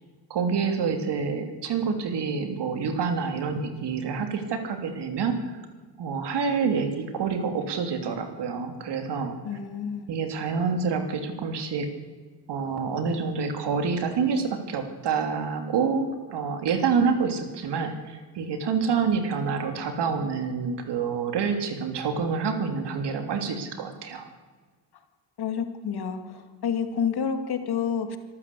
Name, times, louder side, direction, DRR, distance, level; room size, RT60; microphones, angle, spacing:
voice 1, 0.3-5.3 6.0-9.3 10.1-11.9 12.5-24.3, right 5 dB, 65° right, 7 dB, 3.0 m, -27 dB
voice 2, 9.4-10.1 25.4-28.2, left 7 dB, 60° left, 7 dB, 2.4 m, -29 dB
25.5 x 13.5 x 8.4 m, 1.4 s
cardioid pair, 130°, 43 cm